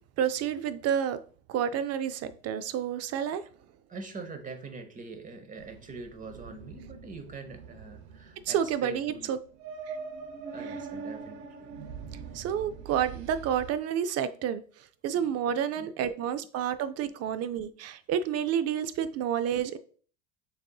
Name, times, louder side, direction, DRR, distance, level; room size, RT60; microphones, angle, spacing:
voice 1, 0.2-1.2 1.5-3.4 8.5-9.4 9.9-10.0 12.3-14.6 15.0-19.8, right 9 dB, 45° right, 12 dB, 0.5 m, -29 dB
voice 2, 3.9-9.3 10.5-11.7 15.1-15.3 15.8-15.9, right 3 dB, 25° right, 7 dB, 0.8 m, -43 dB
sound 1, 5.6-13.8, right 5 dB, 85° right, 0.7 m, -43 dB
6.7 x 2.6 x 2.3 m, 0.43 s
supercardioid pair, 100°, 34 cm